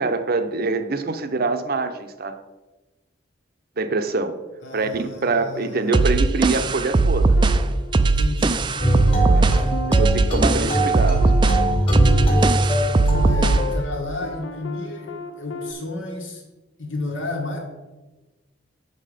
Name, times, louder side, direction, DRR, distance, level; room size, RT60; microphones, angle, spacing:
voice 1, 0.0-2.4 3.8-4.3 4.7-7.4 9.3-9.5 9.9-11.2, right 3 dB, 50° right, 9 dB, 0.7 m, -24 dB
voice 2, 4.6-6.1 8.0-8.7 9.2-9.9 10.6-10.8 12.0-16.4 16.8-17.6, left 2 dB, 85° left, 2 dB, 1.8 m, -32 dB
sound 1, 5.9-13.7, right 3 dB, 25° right, 0.3 m, -19 dB
sound 2, 7.4-8.6 9.1-15.7, left 4 dB, 70° left, 0.6 m, -36 dB
sound 3, 8.8-13.7, right 1 dB, 30° left, 1.7 m, -22 dB
7.6 x 5.8 x 5.0 m, 1.2 s
head